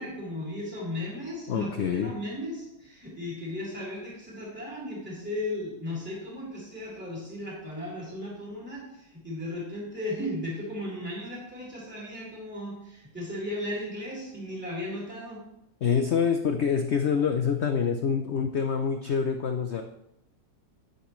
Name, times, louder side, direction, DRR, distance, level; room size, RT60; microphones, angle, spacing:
voice 1, 0.0-15.4, left 1 dB, 5° right, -6 dB, 3.4 m, -36 dB
voice 2, 1.5-2.1 15.8-19.8, left 6 dB, 90° left, 6 dB, 0.5 m, -26 dB
10.0 x 9.6 x 3.1 m, 0.84 s
omnidirectional pair, 1.9 m